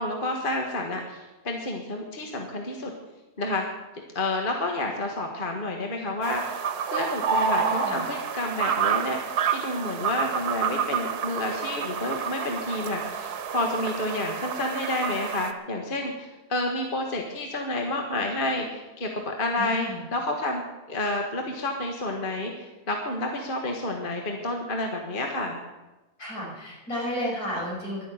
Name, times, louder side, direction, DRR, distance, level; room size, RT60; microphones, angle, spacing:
voice 1, 0.0-2.9 3.4-3.6 4.1-9.2 9.5-20.6 20.9-25.6, left 2 dB, 35° left, 2 dB, 1.7 m, -30 dB
sound 1, 6.2-15.5, right 7 dB, 80° right, 1.6 m, -29 dB
voice 2, 7.6-8.0 19.6-20.0 26.2-28.0, equal, 65° left, -4 dB, 6.5 m, -32 dB
11.5 x 11.0 x 8.8 m, 1.1 s
omnidirectional pair, 1.6 m